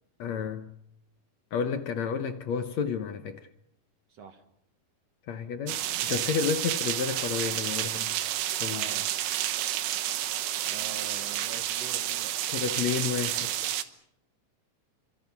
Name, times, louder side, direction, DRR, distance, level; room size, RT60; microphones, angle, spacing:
voice 1, 0.2-0.7 1.5-3.5 5.3-8.1 8.5-8.9 12.5-13.5, left 7 dB, 70° left, 1.7 m, -31 dB
voice 2, 4.1-4.4 6.0-6.5 8.7-9.1 10.7-12.5, right 6 dB, 55° right, 2.0 m, -45 dB
sound 1, 5.7-13.8, right 12 dB, 85° right, 3.3 m, -30 dB
29.0 x 25.5 x 5.9 m
omnidirectional pair, 4.5 m